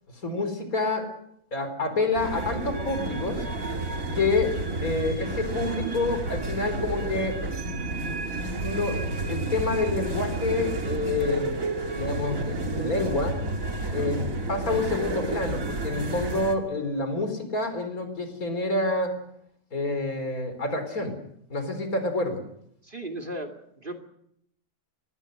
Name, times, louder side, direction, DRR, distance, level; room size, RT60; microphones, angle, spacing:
voice 1, 0.1-1.1 1.5-3.4 4.2-4.5 4.8-7.4 8.6-11.6 11.9-13.4 13.9-19.2 19.7-21.2 21.5-22.4, left 3 dB, 65° left, 8 dB, 4.5 m, -28 dB
sound 1, 2.1-16.6, right 2 dB, 60° right, 2.7 m, -31 dB
voice 2, 22.8-24.0, right 1 dB, 35° right, 9 dB, 2.6 m, -36 dB
25.5 x 21.0 x 6.5 m, 0.73 s
omnidirectional pair, 1.6 m